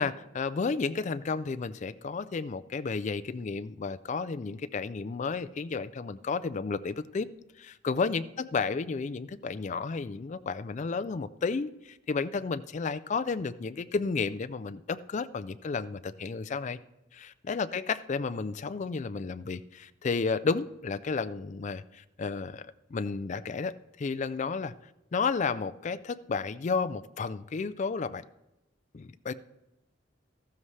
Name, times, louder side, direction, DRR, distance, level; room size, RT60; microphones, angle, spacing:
voice 1, 0.0-7.3 7.6-16.8 17.1-24.7 25.1-28.2 28.9-29.3, left 4 dB, 40° left, 13 dB, 0.4 m, -32 dB
14.0 x 12.5 x 3.3 m, 0.91 s
head